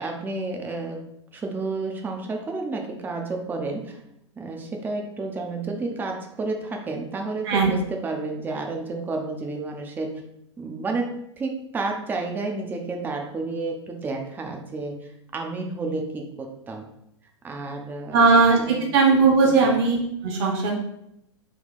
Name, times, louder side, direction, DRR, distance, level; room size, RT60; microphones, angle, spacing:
voice 1, 0.0-4.0 4.4-10.2 10.6-16.9 17.4-18.2 18.6-18.9 19.6-19.8, right 3 dB, 15° right, 2 dB, 0.5 m, -31 dB
voice 2, 18.1-18.6 18.9-20.7, right 4 dB, 55° right, 0 dB, 0.9 m, -18 dB
3.6 x 2.2 x 4.0 m, 0.78 s
hypercardioid pair, 105°, 15 cm